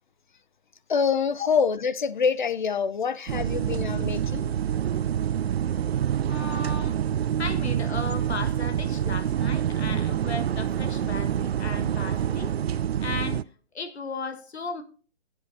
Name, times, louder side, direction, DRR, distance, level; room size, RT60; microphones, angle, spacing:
voice 1, 0.9-4.5, left 6 dB, 50° left, 0.6 m, -26 dB
sound 1, 3.3-13.4, right 9 dB, 70° right, 0.5 m, -27 dB
voice 2, 6.3-7.0 7.4-12.5 13.0-13.5 13.7-14.8, left 3 dB, 80° left, 1.6 m, -35 dB
17.5 x 7.9 x 2.7 m
hypercardioid pair, 170°, 32 cm